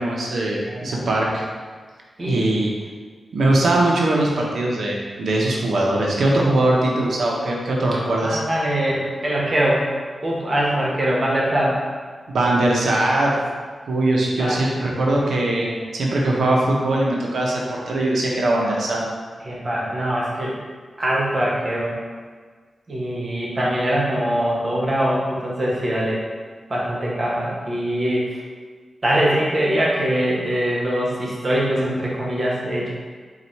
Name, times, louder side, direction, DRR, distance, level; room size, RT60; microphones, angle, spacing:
voice 1, 0.0-1.4 2.3-2.7 3.3-8.4 12.3-13.4 13.9-19.0, right 1 dB, 80° right, -2 dB, 0.7 m, -21 dB
voice 2, 0.7-1.0 2.2-2.6 8.2-9.8 10.2-11.8 14.4-14.6 19.4-20.5 21.0-21.9 22.9-26.2 26.7-28.3 29.0-32.9, right 1 dB, 45° right, -5 dB, 1.3 m, -22 dB
4.0 x 2.4 x 4.4 m, 1.5 s
cardioid pair, 50°, 0 cm